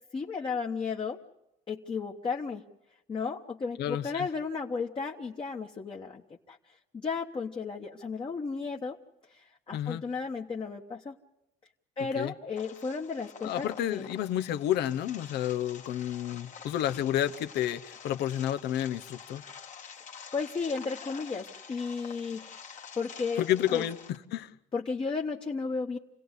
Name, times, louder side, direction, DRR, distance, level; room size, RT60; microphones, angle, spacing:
voice 1, 0.1-1.2 1.7-2.6 3.1-6.6 6.9-9.0 9.3-11.1 12.0-14.1 20.3-22.5 22.9-23.4 23.7-23.8 24.7-26.0, left 4 dB, 30° left, 1.3 m, -34 dB
voice 2, 3.8-4.3 9.7-10.0 12.1-12.3 13.4-19.4 23.4-24.5, left 11 dB, 80° left, 0.9 m, -30 dB
sound 1, 12.6-24.2, left 6 dB, 45° left, 1.6 m, -47 dB
28.0 x 17.0 x 8.2 m
cardioid pair, 110°, 17 cm